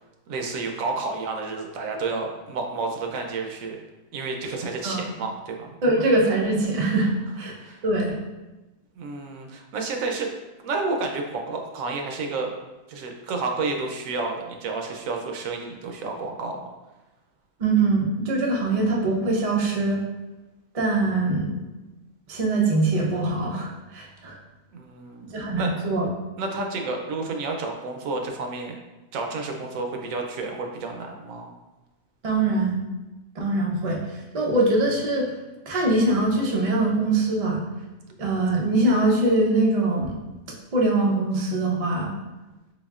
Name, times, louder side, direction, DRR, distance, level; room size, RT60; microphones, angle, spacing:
voice 1, 0.3-3.8 4.1-5.8 7.6-7.8 8.9-10.3 10.6-12.5 12.9-16.7 24.7-25.7 26.4-28.8 29.1-31.5, right 3 dB, 75° right, 3 dB, 1.0 m, -30 dB
voice 2, 5.8-7.1 7.4-7.5 7.8-8.2 17.6-20.0 20.7-21.6 22.3-24.4 25.3-26.1 32.2-32.8 33.4-34.0 34.3-35.3 35.7-37.6 38.2-40.2 40.7-42.1, right 2 dB, 60° right, -2 dB, 0.3 m, -22 dB
4.1 x 3.4 x 2.4 m, 1.1 s
omnidirectional pair, 1.4 m